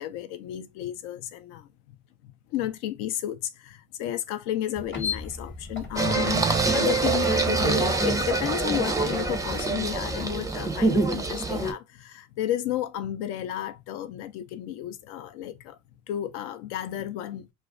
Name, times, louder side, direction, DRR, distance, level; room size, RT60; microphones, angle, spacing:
voice 1, 0.0-1.7 2.2-15.8 16.1-17.5, left 12 dB, 75° left, 0.6 m, -32 dB
sound 1, 4.8-10.3, left 4 dB, 25° left, 0.8 m, -38 dB
Singing, 6.0-11.7, right 3 dB, 10° right, 0.4 m, -25 dB
2.4 x 2.1 x 2.5 m
hypercardioid pair, 55°, 44 cm